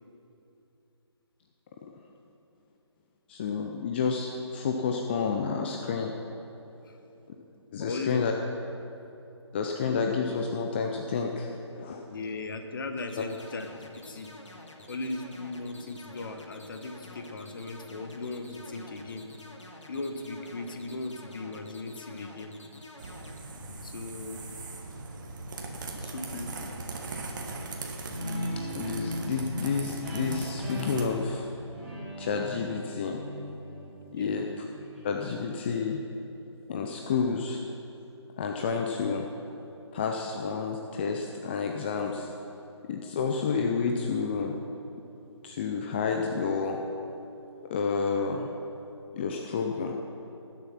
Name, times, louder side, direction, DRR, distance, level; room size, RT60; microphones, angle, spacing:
voice 1, 3.3-6.1 7.7-8.3 9.5-12.0 13.2-13.3 28.7-31.5 32.2-33.2 34.1-34.7 35.0-36.0 36.7-37.6 38.4-39.3 39.9-42.3 42.8-44.5 45.4-46.8 47.7-48.5 49.1-50.0, left 5 dB, 20° left, 2 dB, 0.6 m, -30 dB
voice 2, 7.8-8.3 12.1-14.3 14.9-19.2 19.9-22.5 23.8-24.4 26.0-26.8 34.1-34.3, left 3 dB, 45° left, 6 dB, 1.3 m, -37 dB
sound 1, 13.0-23.4, left 2 dB, 80° left, 2.0 m, -49 dB
sound 2, 23.0-31.1, right 3 dB, 40° right, 1.7 m, -39 dB
Guitar, 28.1-35.3, equal, ahead, 3.7 m, -37 dB
19.5 x 7.2 x 5.9 m, 3.0 s
figure-of-eight pair, 155°, 15 cm